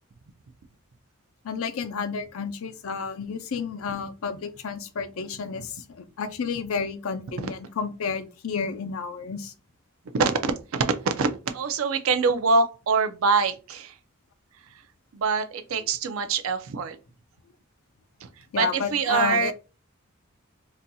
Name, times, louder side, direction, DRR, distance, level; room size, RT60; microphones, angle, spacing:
voice 1, 1.4-9.5 18.5-19.5, left 5 dB, 80° left, 0.5 m, -31 dB
voice 2, 10.1-11.3 11.5-14.0 15.1-17.0 18.2-18.3 18.5-19.5, right 4 dB, 80° right, 0.4 m, -24 dB
3.9 x 2.7 x 2.2 m
head